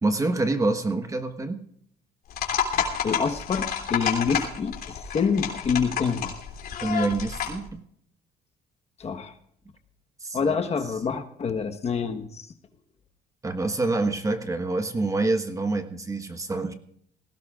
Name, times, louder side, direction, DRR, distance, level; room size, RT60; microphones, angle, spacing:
voice 1, 0.0-1.6 6.8-7.8 10.2-10.6 13.4-16.7, right 2 dB, 20° right, 7 dB, 1.3 m, -26 dB
sound 1, 2.3-7.6, left 7 dB, 65° left, 3.3 m, -30 dB
voice 2, 2.8-6.4 9.0-9.3 10.3-12.5, left 6 dB, 40° left, 6 dB, 1.3 m, -27 dB
20.5 x 17.5 x 2.5 m, 0.67 s
cardioid pair, 110°, 17 cm